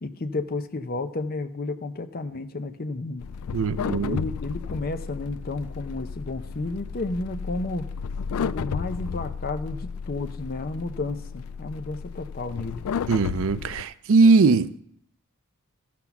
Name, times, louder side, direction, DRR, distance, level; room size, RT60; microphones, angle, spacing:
voice 1, 0.0-3.3 3.8-7.9 8.4-12.9, left 2 dB, 45° left, 0.6 m, -32 dB
sound 1, 3.2-13.8, left 6 dB, 75° left, 0.3 m, -33 dB
voice 2, 3.5-4.2 13.1-14.8, right 4 dB, 65° right, 0.4 m, -20 dB
13.5 x 6.0 x 5.9 m
head